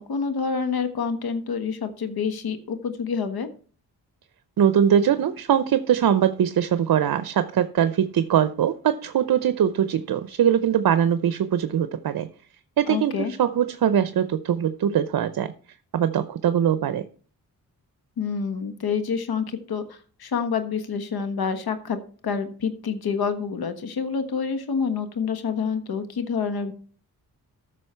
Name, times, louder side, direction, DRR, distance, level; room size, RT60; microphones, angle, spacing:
voice 1, 0.0-3.5 12.9-13.3 18.2-22.0 22.2-26.7, left 6 dB, 80° left, 1.5 m, -27 dB
voice 2, 4.6-12.3 12.8-13.1 13.4-15.5 15.9-17.0, right 9 dB, 65° right, 0.7 m, -22 dB
13.5 x 6.2 x 4.4 m
cardioid pair, 80°, 37 cm